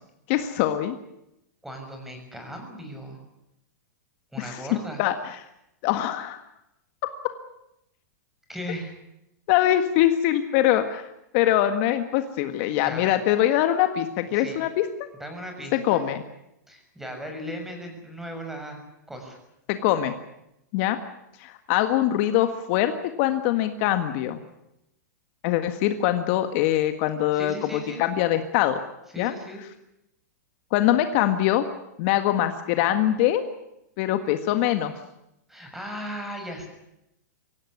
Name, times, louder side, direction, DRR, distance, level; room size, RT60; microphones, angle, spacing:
voice 1, 0.3-1.0 4.4-4.6 5.0-5.4 5.8-6.4 9.5-11.1 11.3-14.9 15.7-16.2 19.7-20.1 20.7-21.0 21.4-22.9 23.2-24.4 25.4-28.8 29.2-29.3 30.7-31.6 32.0-33.4 34.0-34.9, left 12 dB, 45° left, 8 dB, 1.7 m, -23 dB
voice 2, 1.6-3.2 4.3-5.0 8.5-8.9 12.8-13.1 14.4-14.6 15.2-16.0 16.7-18.8 19.1-19.4 27.3-28.1 29.1-29.6 35.5-36.7, equal, 5° right, 4 dB, 6.6 m, -37 dB
24.0 x 17.0 x 9.7 m, 0.85 s
hypercardioid pair, 140°, 10 cm